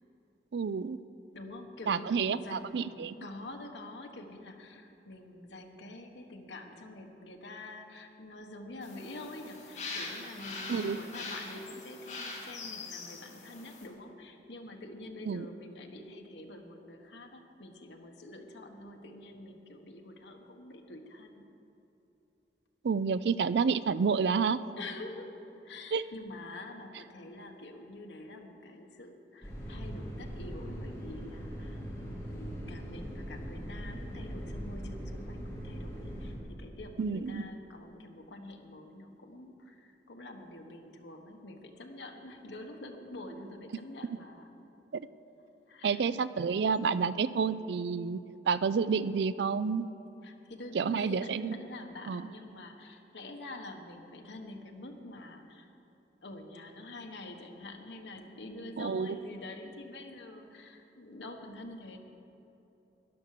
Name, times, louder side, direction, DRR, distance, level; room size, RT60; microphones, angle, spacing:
voice 1, 0.5-1.0 1.9-3.2 10.7-11.0 15.3-15.5 22.8-24.6 25.9-26.1 37.0-37.4 44.9-45.1 45.8-48.2 48.5-49.8 50.7-51.6 52.1-52.3 58.8-59.2, right 5 dB, 75° right, 16 dB, 0.4 m, -29 dB
voice 2, 1.3-2.9 3.2-21.5 24.8-25.3 25.6-44.5 45.7-46.0 50.2-55.7 56.2-62.0, left 2 dB, 90° left, 3 dB, 1.3 m, -46 dB
sound 1, 8.8-13.9, left 3 dB, 40° left, 2.0 m, -42 dB
sound 2, 29.4-36.3, equal, 15° left, 2.9 m, -40 dB
12.5 x 11.0 x 6.6 m, 2.9 s
head